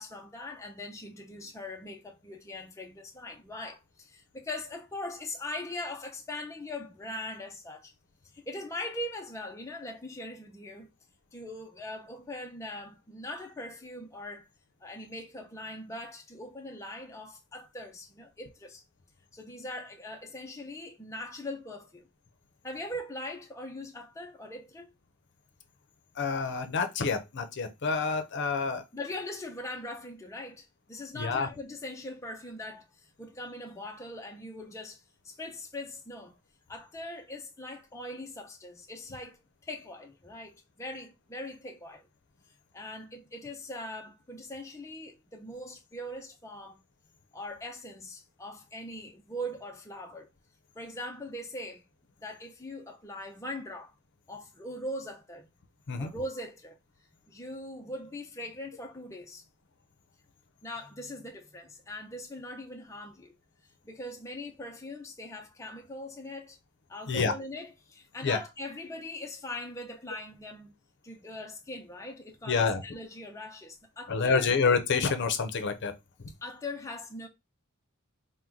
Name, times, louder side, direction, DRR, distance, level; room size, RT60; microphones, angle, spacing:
voice 1, 0.0-7.9 8.3-10.9 11.3-14.5 14.8-18.8 19.3-22.1 22.6-24.9 28.9-36.3 36.7-42.1 42.7-46.8 47.3-50.3 50.8-51.8 52.2-53.9 54.3-55.5 56.0-56.8 57.3-59.5 60.6-63.4 63.8-66.6 66.9-70.7 71.0-74.5 76.4-77.3, left 1 dB, 15° left, 0.5 m, -41 dB
voice 2, 26.2-28.8 31.1-31.5 55.9-56.1 67.1-67.3 68.2-68.4 72.5-72.8 74.1-75.9, left 5 dB, 55° left, 0.7 m, -27 dB
3.8 x 2.2 x 4.5 m
head